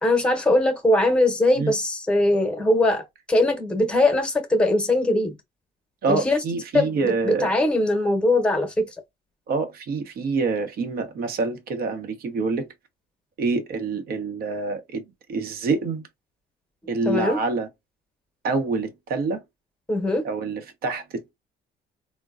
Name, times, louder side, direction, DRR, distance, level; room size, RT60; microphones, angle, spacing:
voice 1, 0.0-3.0 3.3-5.3 6.1-6.4 6.7-8.9 17.0-17.4 19.9-20.2, left 1 dB, 5° left, 0.9 m, -21 dB
voice 2, 6.0-7.5 9.5-12.7 13.4-15.0 15.3-16.0 16.9-17.7 18.4-19.4 20.2-21.3, right 4 dB, 65° right, 0.9 m, -26 dB
3.7 x 2.1 x 2.3 m
cardioid pair, 110°, 17 cm